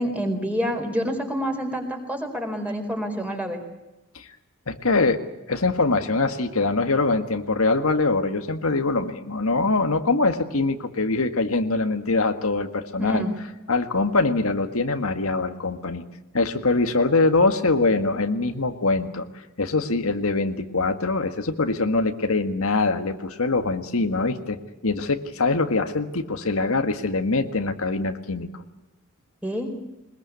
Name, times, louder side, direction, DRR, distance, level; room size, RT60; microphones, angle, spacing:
voice 1, 0.0-3.6 13.0-13.3 29.4-29.7, equal, 5° right, 3 dB, 4.2 m, -27 dB
voice 2, 4.7-5.2 5.5-13.2 13.7-16.0 16.3-19.2 19.6-24.6 24.8-28.5, left 3 dB, 85° left, 7 dB, 1.8 m, -23 dB
22.0 x 21.0 x 8.4 m, 1.0 s
head